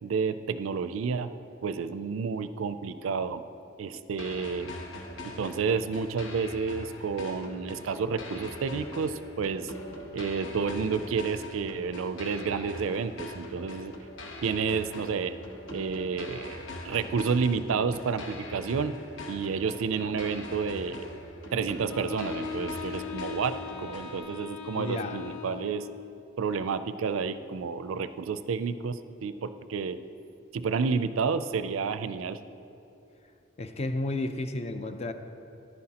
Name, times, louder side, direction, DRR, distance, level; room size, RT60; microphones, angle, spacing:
voice 1, 0.0-1.3 1.6-3.4 3.8-4.7 5.2-9.7 10.1-13.9 14.4-15.4 15.7-19.0 19.3-21.1 21.5-25.9 26.4-30.0 30.5-32.4, right 5 dB, 85° right, 12 dB, 0.4 m, -30 dB
sound 1, 4.2-24.2, left 1 dB, 70° left, 1.1 m, -42 dB
Wind instrument woodwind instrument, 21.9-26.0, left 6 dB, 90° left, 0.7 m, -40 dB
voice 2, 24.8-25.2 33.6-35.1, left 2 dB, 30° left, 8 dB, 0.4 m, -32 dB
13.5 x 11.0 x 2.9 m, 2.8 s
head